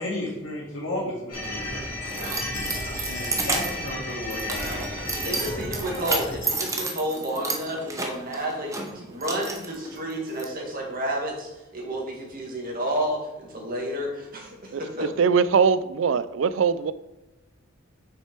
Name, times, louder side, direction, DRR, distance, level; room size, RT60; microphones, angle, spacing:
voice 1, 0.0-2.3 3.1-5.7, left 1 dB, 70° left, 2.1 m, -34 dB
sound 1, 1.3-6.5, left 1 dB, 45° left, 2.6 m, -33 dB
Keys jangling, 1.4-10.4, right 3 dB, 15° right, 0.9 m, -32 dB
voice 2, 5.2-15.1, equal, 45° right, 2.0 m, -31 dB
voice 3, 15.2-16.9, right 6 dB, 70° right, 0.4 m, -21 dB
6.7 x 5.9 x 4.5 m
head